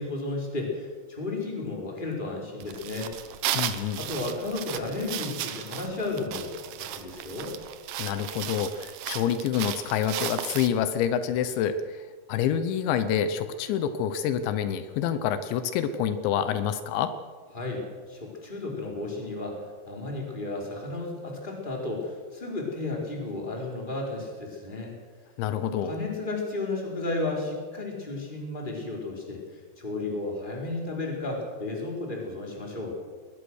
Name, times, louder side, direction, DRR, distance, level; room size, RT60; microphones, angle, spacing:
voice 1, 0.0-3.1 4.0-7.5 17.5-17.8 18.1-19.6 19.8-24.9 25.8-29.4 29.8-32.9, left 2 dB, 10° left, -1 dB, 4.0 m, -33 dB
sound 1, 2.6-10.7, right 11 dB, 75° right, 2.0 m, -35 dB
voice 2, 3.6-4.0 8.0-17.1 25.4-25.9, left 9 dB, 80° left, 11 dB, 3.2 m, -27 dB
20.5 x 20.0 x 6.4 m, 1.5 s
omnidirectional pair, 5.2 m